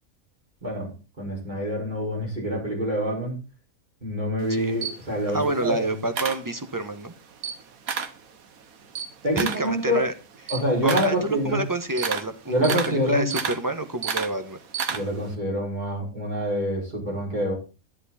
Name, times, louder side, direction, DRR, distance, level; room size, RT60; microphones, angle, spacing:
voice 1, 0.6-3.3 4.0-5.9 9.2-10.0 10.5-11.6 12.5-13.3 14.9-17.5, equal, 30° right, -3 dB, 5.6 m, -26 dB
Camera, 4.4-7.0 7.3-8.2 8.6-15.3, right 7 dB, 80° right, 1.5 m, -32 dB
voice 2, 5.3-7.1 9.4-10.1 10.8-14.6, right 2 dB, 15° right, 8 dB, 1.0 m, -28 dB
11.0 x 10.5 x 4.2 m, 0.32 s
omnidirectional pair, 1.5 m